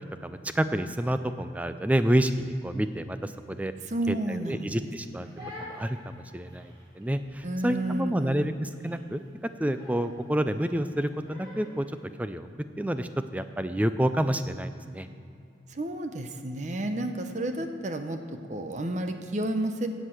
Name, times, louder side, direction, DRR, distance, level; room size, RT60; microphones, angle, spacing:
voice 1, 0.2-3.7 4.1-5.3 5.6-9.2 9.6-11.9 12.2-12.5 12.8-15.1, right 1 dB, 10° right, 10 dB, 0.4 m, -29 dB
voice 2, 3.9-4.9 5.3-5.5 7.4-8.5 15.7-19.9, right 1 dB, 40° right, 7 dB, 0.7 m, -31 dB
Crying sobbing, 5.0-11.9, left 1 dB, 25° right, 2.8 m, -47 dB
10.0 x 8.2 x 7.6 m, 2.5 s
head